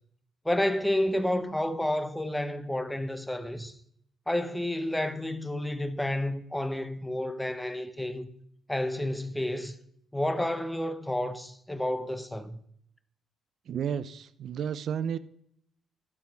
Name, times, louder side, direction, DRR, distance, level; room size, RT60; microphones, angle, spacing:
voice 1, 0.4-3.8 4.3-8.3 8.7-9.8 10.1-12.6, left 1 dB, 5° left, 1.1 m, -30 dB
voice 2, 13.7-15.2, right 8 dB, 65° right, 0.7 m, -32 dB
12.0 x 7.4 x 5.8 m
cardioid pair, 90°, 0 cm